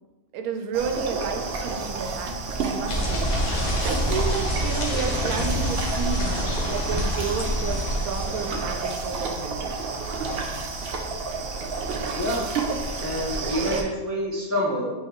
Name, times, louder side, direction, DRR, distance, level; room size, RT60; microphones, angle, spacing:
voice 1, 0.3-2.3 2.6-3.3 3.8-9.7, right 6 dB, 85° right, 5 dB, 1.0 m, -31 dB
sound 1, 0.7-13.8, right 4 dB, 70° right, 0.5 m, -30 dB
sound 2, 2.9-9.1, left 1 dB, 60° left, 1.1 m, -27 dB
voice 2, 12.1-12.6 13.0-14.9, equal, 25° left, -5 dB, 0.3 m, -27 dB
4.7 x 3.2 x 3.0 m, 1.1 s
omnidirectional pair, 1.5 m